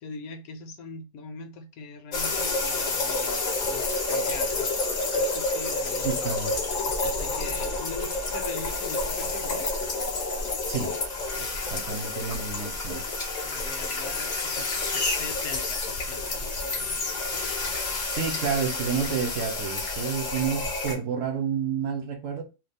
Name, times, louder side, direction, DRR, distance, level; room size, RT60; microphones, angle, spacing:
voice 1, 0.0-6.2 7.0-9.7 11.4-11.7 13.4-17.1, left 4 dB, 75° left, 1.0 m, -42 dB
sound 1, 2.1-20.9, left 3 dB, 55° left, 0.5 m, -29 dB
voice 2, 6.0-6.5 10.7-11.0 11.7-13.1 18.1-22.4, right 7 dB, 60° right, 1.0 m, -30 dB
2.6 x 2.3 x 3.5 m
omnidirectional pair, 1.6 m